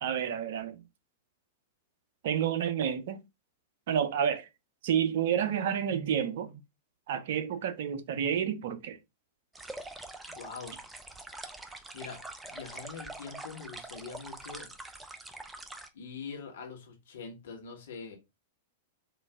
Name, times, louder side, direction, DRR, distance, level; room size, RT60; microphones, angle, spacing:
voice 1, 0.0-0.8 2.2-3.2 3.9-4.5 4.8-6.6 7.1-9.0, right 8 dB, 55° right, 0.5 m, -30 dB
sound 1, 9.5-15.9, right 2 dB, 10° right, 0.5 m, -44 dB
voice 2, 10.3-10.8 11.4-11.6 11.9-12.2 12.5-14.7 15.9-18.2, left 5 dB, 60° left, 1.3 m, -44 dB
3.9 x 2.5 x 3.3 m
figure-of-eight pair, 100°, 0 cm